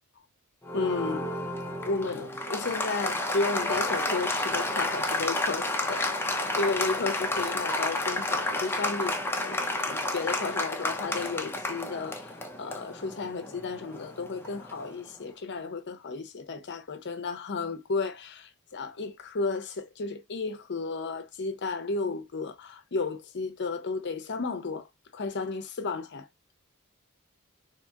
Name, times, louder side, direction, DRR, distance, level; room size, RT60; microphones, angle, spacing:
Applause, 0.6-15.0, left 2 dB, 10° left, 0.5 m, -31 dB
voice 1, 0.7-1.3 1.9-6.1 6.6-26.3, left 4 dB, 55° left, 0.6 m, -33 dB
2.9 x 2.8 x 2.3 m
head